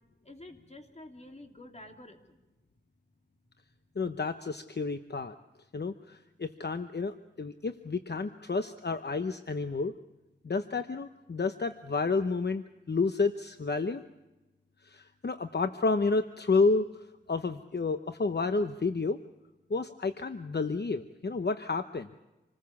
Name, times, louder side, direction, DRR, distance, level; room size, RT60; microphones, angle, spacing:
voice 1, 0.2-2.4, left 1 dB, 35° left, 3 dB, 3.2 m, -49 dB
voice 2, 4.0-5.3 5.7-9.9 10.4-14.0 14.8-16.9 17.3-19.2 19.7-22.1, left 4 dB, 60° left, 9 dB, 0.9 m, -30 dB
27.0 x 20.0 x 7.1 m, 1.0 s
wide cardioid pair, 65°, 19 cm